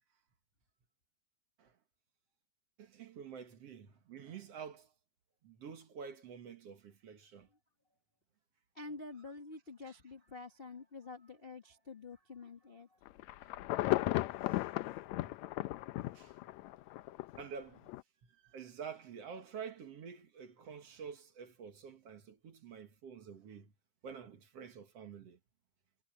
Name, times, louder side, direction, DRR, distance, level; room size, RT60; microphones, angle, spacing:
voice 1, 2.8-4.9 5.4-7.5 9.9-10.0 13.4-13.6 14.4-14.8 15.3-15.4 16.1-16.4 17.4-17.9 18.2-23.7 24.0-25.4, right 6 dB, 55° right, 2.3 m, -49 dB
voice 2, 8.7-12.9, left 3 dB, 65° left, 0.5 m, -48 dB
Insect / Thunder / Rain, 13.1-17.4 17.9-18.0, left 17 dB, 85° left, 1.6 m, -35 dB
omnidirectional pair, 3.8 m